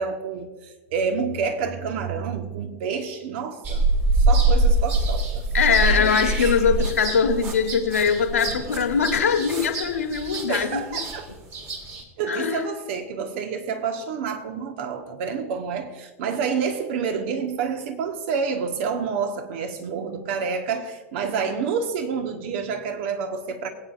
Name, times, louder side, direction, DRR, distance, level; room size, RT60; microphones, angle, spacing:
voice 1, 0.0-3.8 4.2-5.4 5.8-6.2 10.5-11.3 12.2-23.7, right 6 dB, 55° right, 1.4 m, -28 dB
sound 1, 3.6-12.0, right 2 dB, 30° right, 2.2 m, -24 dB
voice 2, 5.5-11.0 12.3-12.6, left 6 dB, 80° left, 1.6 m, -22 dB
21.5 x 8.8 x 2.5 m
figure-of-eight pair, 95°, 8 cm